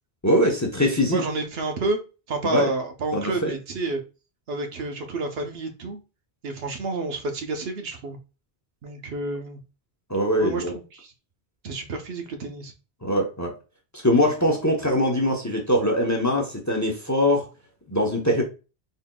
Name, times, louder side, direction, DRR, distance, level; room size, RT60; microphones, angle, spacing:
voice 1, 0.2-1.2 2.4-2.7 3.1-3.5 10.1-10.7 13.0-13.5 14.0-17.4 17.9-18.4, equal, 20° left, 0.7 m, -22 dB
voice 2, 1.1-2.0 2.3-4.0 4.5-6.0 6.4-8.2 8.8-9.6 10.4-10.6 10.9-11.1 11.6-12.7, right 3 dB, 75° right, 1.0 m, -29 dB
4.1 x 3.6 x 2.2 m
omnidirectional pair, 1.1 m